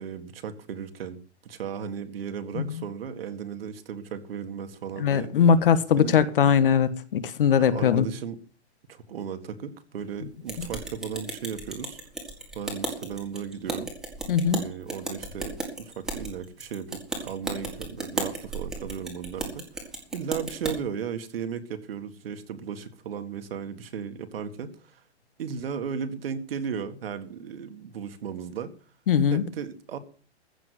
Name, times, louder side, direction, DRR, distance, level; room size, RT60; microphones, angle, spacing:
voice 1, 0.0-5.3 6.0-6.1 7.6-8.4 8.9-12.0 12.5-13.9 14.5-19.6 20.1-25.0 25.4-28.7 29.3-30.0, right 7 dB, 60° right, 1.8 m, -35 dB
voice 2, 5.0-8.1 14.3-14.7 29.1-29.4, left 7 dB, 55° left, 1.2 m, -21 dB
sound 1, 10.5-20.7, right 2 dB, ahead, 1.7 m, -35 dB
15.0 x 6.0 x 8.0 m
hypercardioid pair, 170°, 34 cm